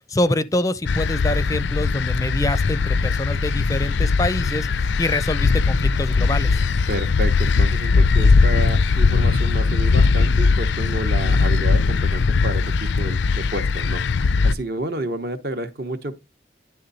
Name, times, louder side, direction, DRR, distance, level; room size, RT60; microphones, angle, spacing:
voice 1, 0.1-6.6, left 1 dB, 20° left, 0.4 m, -25 dB
sound 1, 0.9-14.5, left 4 dB, 85° left, 0.4 m, -19 dB
voice 2, 6.9-14.0 14.4-16.1, right 2 dB, 55° right, 1.0 m, -30 dB
10.5 x 3.5 x 4.1 m
head